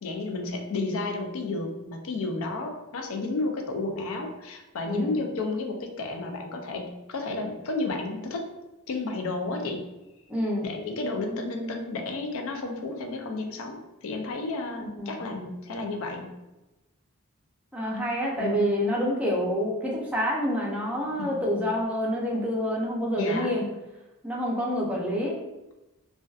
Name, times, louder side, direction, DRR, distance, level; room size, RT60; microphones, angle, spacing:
voice 1, 0.0-8.5 8.9-9.9 10.6-16.4 18.4-18.8 21.2-21.3 23.2-23.5, left 3 dB, 65° left, 3 dB, 0.4 m, -32 dB
voice 2, 4.9-5.2 10.3-10.7 14.7-15.2 17.7-23.7 24.2-25.4, equal, 5° right, -4 dB, 0.4 m, -27 dB
2.5 x 2.2 x 2.3 m, 1.0 s
head